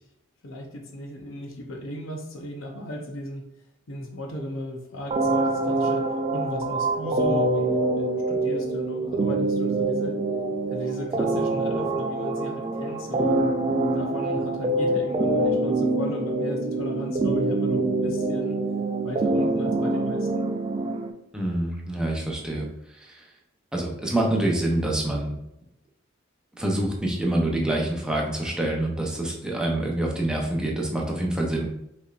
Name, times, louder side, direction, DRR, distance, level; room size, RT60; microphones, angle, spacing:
voice 1, 0.4-3.5 3.9-10.2 10.7-13.4 13.9-18.6 19.0-20.5, left 1 dB, 75° left, 2 dB, 0.8 m, -36 dB
sound 1, 5.1-21.1, right 2 dB, 25° right, 0.3 m, -25 dB
voice 2, 21.3-22.7 23.7-25.3 26.6-31.7, right 1 dB, 5° right, -1 dB, 0.7 m, -26 dB
5.2 x 3.3 x 2.5 m, 0.82 s
head